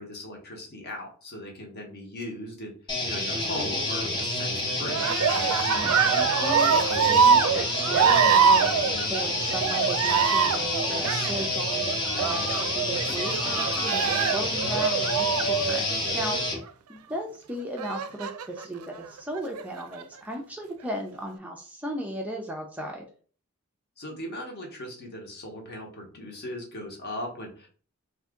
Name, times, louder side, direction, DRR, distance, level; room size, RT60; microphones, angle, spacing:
voice 1, 0.0-2.7 3.0-5.0 24.0-27.7, left 1 dB, 50° left, 1 dB, 1.0 m, -38 dB
sound 1, 2.9-16.6, left 2 dB, 20° left, 0.7 m, -29 dB
Cheering, 4.8-16.5 17.8-18.6 19.4-20.0, right 6 dB, 75° right, 0.4 m, -24 dB
voice 2, 5.7-8.7 9.0-16.5 16.9-23.0, equal, 5° right, 1 dB, 0.3 m, -36 dB
2.6 x 2.5 x 3.5 m, 0.41 s
head